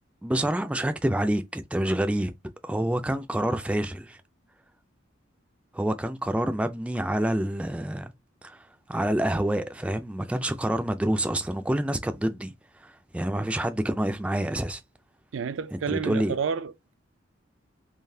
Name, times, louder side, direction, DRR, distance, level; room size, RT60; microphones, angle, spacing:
voice 1, 0.2-2.3 2.6-4.2 5.7-8.1 8.4-8.6 8.9-12.5 12.8-14.8 15.9-16.4, right 1 dB, 5° right, 0.3 m, -27 dB
voice 2, 15.3-16.9, right 6 dB, 80° right, 0.4 m, -30 dB
3.8 x 3.0 x 2.7 m
head